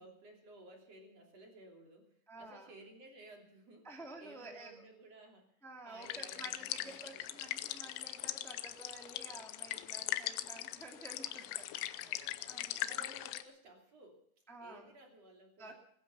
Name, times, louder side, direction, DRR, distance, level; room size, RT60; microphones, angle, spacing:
voice 1, 0.0-7.5 11.8-14.2 14.6-15.7, right 1 dB, 35° right, 2 dB, 3.4 m, -57 dB
voice 2, 2.3-2.7 3.8-4.8 5.6-13.2 14.5-14.9 15.6-15.7, right 2 dB, ahead, 1 dB, 0.8 m, -52 dB
sound 1, 6.0-13.4, left 14 dB, 85° left, 3.3 m, -40 dB
21.0 x 12.0 x 5.7 m, 0.66 s
omnidirectional pair, 5.5 m